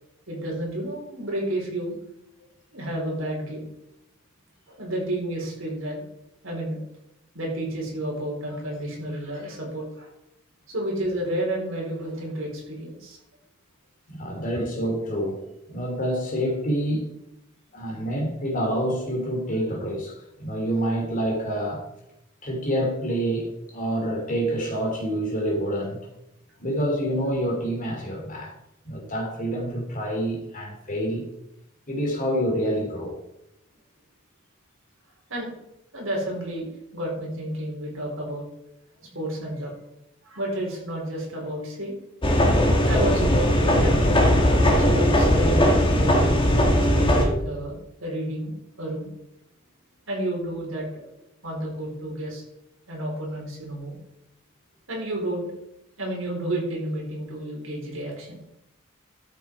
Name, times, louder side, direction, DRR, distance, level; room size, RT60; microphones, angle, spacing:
voice 1, 0.3-2.0 2.7-3.7 4.7-6.0 6.4-6.8 7.3-10.1 10.7-13.2 35.3-35.5 35.9-38.5 39.1-39.7 40.2-41.9 42.9-44.2 44.8-46.2 46.9-49.1 50.1-51.0 51.4-52.4 52.9-54.0 54.9-55.5 56.0-58.4, right 1 dB, 65° right, -2 dB, 4.5 m, -31 dB
voice 2, 14.1-15.4 15.7-17.1 17.7-21.8 22.4-26.0 26.6-28.5 28.8-31.3 31.9-33.1, equal, 40° left, 1 dB, 2.8 m, -27 dB
sound 1, 42.2-47.3, equal, 25° left, 1.7 m, -19 dB
12.5 x 7.2 x 4.8 m, 0.84 s
head